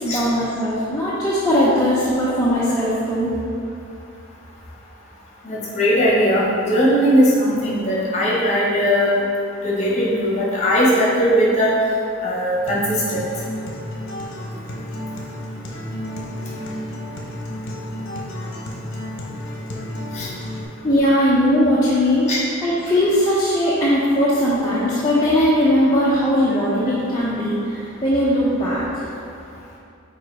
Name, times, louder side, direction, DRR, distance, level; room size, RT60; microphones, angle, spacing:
voice 1, 0.0-3.3 20.8-22.3 22.6-29.1, equal, 15° left, -10 dB, 0.8 m, -19 dB
voice 2, 5.4-9.2 9.6-11.7 12.2-13.2 20.1-20.3 22.3-22.4, equal, 30° left, -6 dB, 1.5 m, -19 dB
Acoustic guitar, 12.6-20.6, left 1 dB, 55° left, 0.9 m, -32 dB
5.4 x 4.2 x 4.8 m, 2.5 s
head